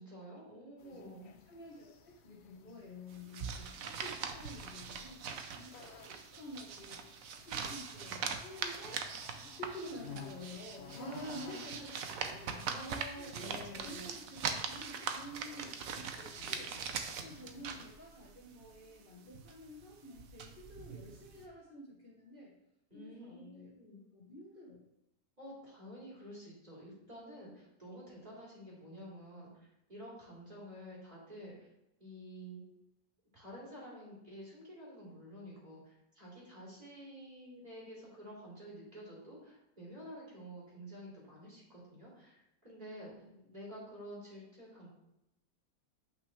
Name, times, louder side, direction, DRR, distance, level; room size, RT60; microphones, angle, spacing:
voice 1, 0.0-1.3 11.0-11.8 12.6-14.1 22.9-24.0 25.4-31.7 32.0-32.6 33.3-43.2 43.5-44.9, equal, 25° right, -6 dB, 3.3 m, -49 dB
sound 1, 0.8-17.9, left 7 dB, 65° left, 0.6 m, -56 dB
voice 2, 0.8-5.2 5.5-9.0 9.5-12.0 12.2-12.6 13.2-16.8 17.2-22.5 22.9-23.8 24.1-24.8 42.8-43.5, left 1 dB, 35° left, -4 dB, 1.2 m, -50 dB
sound 2, 3.1-21.4, right 6 dB, 60° right, 1.0 m, -42 dB
8.6 x 5.8 x 3.3 m, 0.88 s
omnidirectional pair, 1.9 m